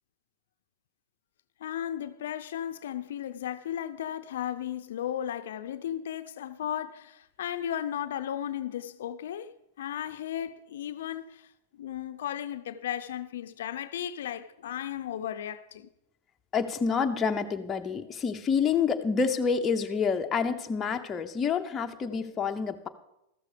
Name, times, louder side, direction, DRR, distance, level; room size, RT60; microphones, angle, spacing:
voice 1, 1.6-11.4 11.8-15.9, left 10 dB, 80° left, 0.5 m, -35 dB
voice 2, 16.5-22.9, left 6 dB, 20° left, 0.7 m, -28 dB
13.5 x 6.7 x 5.0 m
supercardioid pair, 135°, 0 cm